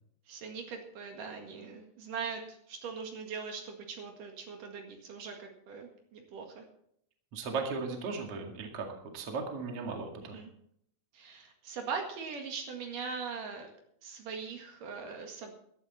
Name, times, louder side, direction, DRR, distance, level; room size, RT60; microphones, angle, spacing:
voice 1, 0.3-6.6 10.3-10.5 11.1-13.7 14.0-15.5, right 5 dB, 70° right, 3 dB, 3.4 m, -41 dB
voice 2, 7.3-8.9 9.1-10.4, right 4 dB, 45° right, 3 dB, 2.9 m, -36 dB
15.0 x 12.5 x 4.2 m, 0.71 s
omnidirectional pair, 4.0 m